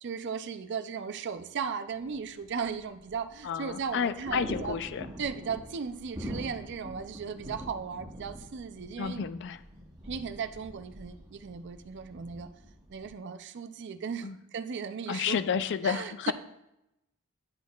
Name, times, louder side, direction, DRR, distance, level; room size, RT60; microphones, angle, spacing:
voice 1, 0.0-4.8 5.2-9.3 10.0-12.5 12.9-15.4 15.8-16.3, right 6 dB, 50° right, 10 dB, 0.4 m, -36 dB
sound 1, 1.9-13.1, equal, 15° right, 0.9 m, -45 dB
voice 2, 3.4-5.1 9.0-9.6 14.2-14.4 15.1-16.3, left 6 dB, 55° left, 13 dB, 0.3 m, -31 dB
10.0 x 6.1 x 2.4 m, 0.89 s
head